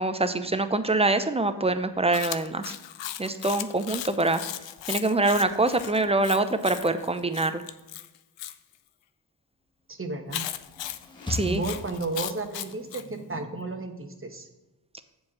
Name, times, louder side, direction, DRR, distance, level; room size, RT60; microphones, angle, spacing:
voice 1, 0.0-2.7 3.2-4.4 4.9-7.6 11.3-11.6, right 2 dB, 15° right, 10 dB, 0.7 m, -25 dB
Chewing mastication, 2.1-8.6 10.3-13.1, left 12 dB, 80° left, 0.6 m, -37 dB
voice 2, 9.9-10.4 11.4-14.5, right 3 dB, 30° right, 6 dB, 1.3 m, -33 dB
sound 1, 10.3-12.7, left 2 dB, 10° left, 1.5 m, -37 dB
7.3 x 4.7 x 5.9 m, 1.1 s
cardioid pair, 45°, 44 cm